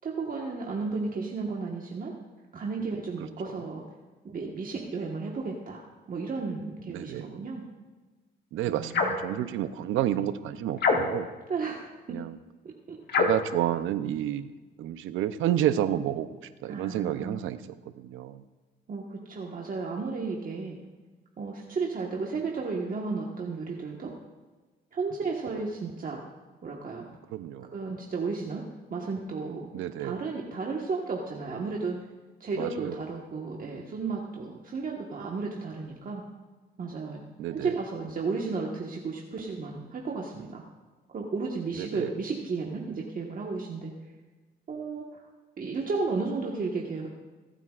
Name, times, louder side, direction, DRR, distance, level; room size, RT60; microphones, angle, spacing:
voice 1, 0.0-2.1 2.5-3.8 4.2-5.8 6.1-7.6 8.6-9.2 11.5-12.2 12.9-13.0 16.7-17.5 18.9-20.8 21.4-24.1 24.9-26.2 26.6-27.1 27.7-29.7 30.0-32.0 32.4-36.2 36.8-37.2 37.5-40.6 41.1-43.9 44.7-45.0 45.6-47.1, right 4 dB, 45° right, -1 dB, 1.4 m, -33 dB
voice 2, 6.9-7.3 8.5-11.3 12.1-12.4 13.1-14.5 14.8-17.6 18.0-18.4 27.3-27.7 29.7-30.2 32.6-33.0 37.4-37.7 41.8-42.1, right 11 dB, 85° right, 12 dB, 0.7 m, -30 dB
sound 1, 8.9-9.3 10.8-11.4 13.1-13.5, left 4 dB, 55° left, 1.6 m, -25 dB
25.5 x 9.1 x 2.5 m, 1.3 s
cardioid pair, 90°, 20 cm